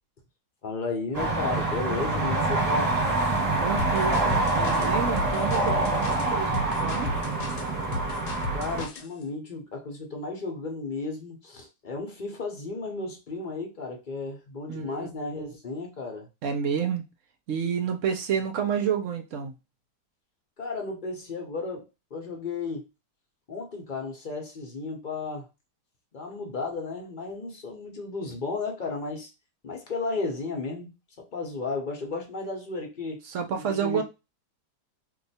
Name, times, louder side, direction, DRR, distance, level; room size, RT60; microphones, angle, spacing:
voice 1, 0.6-2.9 8.5-16.3 20.6-22.8 23.5-25.5 26.1-29.3 29.6-33.2 33.5-34.0, left 3 dB, 45° left, 0.6 m, -34 dB
sound 1, 1.1-8.9, right 2 dB, 25° right, 1.2 m, -26 dB
voice 2, 3.6-7.2 14.7-15.1 15.4-15.5 16.4-17.0 17.5-19.5 33.2-34.0, right 7 dB, 65° right, 0.8 m, -29 dB
sound 2, 3.8-9.1, left 1 dB, 75° left, 1.2 m, -34 dB
2.7 x 2.3 x 4.1 m
omnidirectional pair, 1.8 m